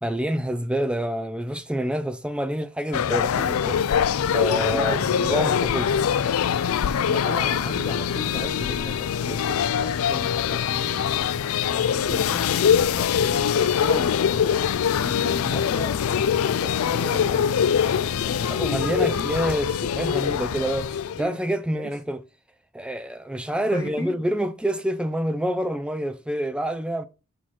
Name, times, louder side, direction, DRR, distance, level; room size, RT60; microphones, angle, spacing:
voice 1, 0.0-3.8 4.3-5.9 18.5-22.2 22.7-27.1, right 1 dB, 5° right, 0.3 m, -27 dB
sound 1, 2.9-21.2, left 8 dB, 80° left, 0.4 m, -23 dB
voice 2, 4.7-5.6 7.1-11.0 11.7-14.2 15.0-17.6 18.2-18.7 19.0-19.3 21.2-21.4 21.8-21.9 23.6-24.2, equal, 15° left, 1.0 m, -35 dB
8.0 x 2.9 x 6.1 m
head